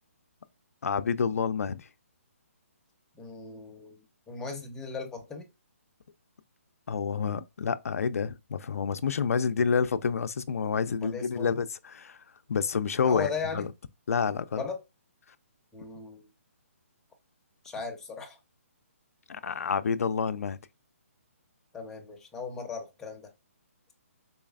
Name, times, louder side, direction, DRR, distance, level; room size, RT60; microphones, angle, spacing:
voice 1, 0.8-1.9 6.9-12.2 12.5-13.3 13.5-13.7 14.1-14.6 19.3-20.6, left 6 dB, 80° left, 0.4 m, -28 dB
voice 2, 3.2-5.5 11.0-11.5 13.0-13.7 14.6-14.8 15.7-16.3 17.6-18.4 21.7-23.3, left 5 dB, 5° left, 0.6 m, -37 dB
4.1 x 3.1 x 2.3 m
hypercardioid pair, 155°, 8 cm